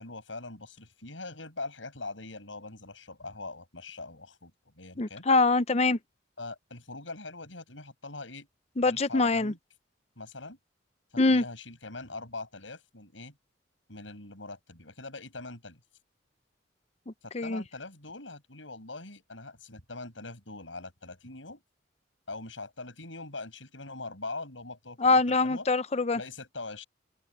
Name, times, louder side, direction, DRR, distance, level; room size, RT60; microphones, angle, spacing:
voice 1, 0.0-5.2 6.4-8.5 8.8-9.6 10.2-10.6 11.1-13.3 13.9-15.8 17.2-21.6 22.3-25.7 26.1-26.8, left 3 dB, 85° left, 7.4 m, -42 dB
voice 2, 5.0-6.0 8.8-9.5 11.2-11.4 17.3-17.6 25.0-26.2, left 3 dB, 35° left, 0.6 m, -24 dB
head